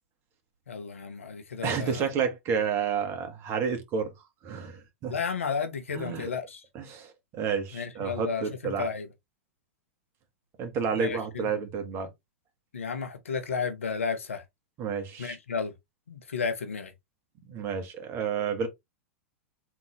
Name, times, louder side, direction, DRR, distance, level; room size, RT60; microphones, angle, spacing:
voice 1, 0.7-2.1 5.1-6.6 7.7-9.1 10.9-11.5 12.7-14.4 15.2-15.7 16.1-16.9, left 5 dB, 80° left, 1.0 m, -33 dB
voice 2, 1.6-4.1 4.4-5.1 5.9-6.3 6.7-8.9 10.6-12.1 14.8-15.4 17.4-18.7, right 6 dB, 35° right, 1.8 m, -30 dB
3.8 x 3.7 x 3.1 m
figure-of-eight pair, 100°, 7 cm